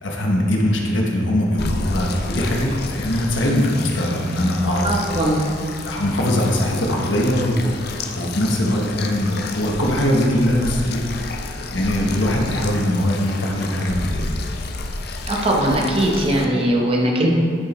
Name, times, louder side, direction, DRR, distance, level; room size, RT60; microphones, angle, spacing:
voice 1, 0.0-5.0 5.9-7.7 8.1-14.4, left 1 dB, 85° left, -1 dB, 1.1 m, -21 dB
sound 1, 1.6-16.4, left 3 dB, 60° left, 0.5 m, -31 dB
voice 2, 4.8-5.5 15.3-17.3, right 1 dB, 30° right, -1 dB, 0.9 m, -20 dB
9.9 x 5.1 x 3.1 m, 2.3 s
head